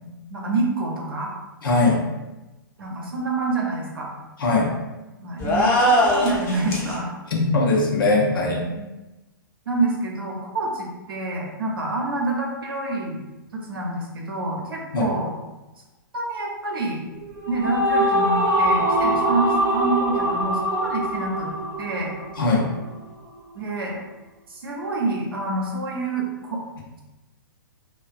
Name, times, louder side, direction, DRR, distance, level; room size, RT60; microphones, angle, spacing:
voice 1, 0.0-1.3 2.8-4.1 5.2-7.1 8.7-8.8 9.7-13.2 13.5-15.3 16.1-17.0 17.5-21.5 21.8-22.1 23.5-23.9 24.5-26.6, right 2 dB, 75° right, -1 dB, 0.7 m, -27 dB
voice 2, 1.6-2.0 4.4-4.7 7.3-8.6 14.9-15.1 22.4-22.7, left 3 dB, 70° left, -1 dB, 0.6 m, -20 dB
sound 1, 5.4-6.9, equal, 25° left, 0.6 m, -20 dB
sound 2, 17.2-22.7, equal, 35° right, 0.7 m, -23 dB
2.4 x 2.2 x 2.3 m, 1.1 s
figure-of-eight pair, 115°, 12 cm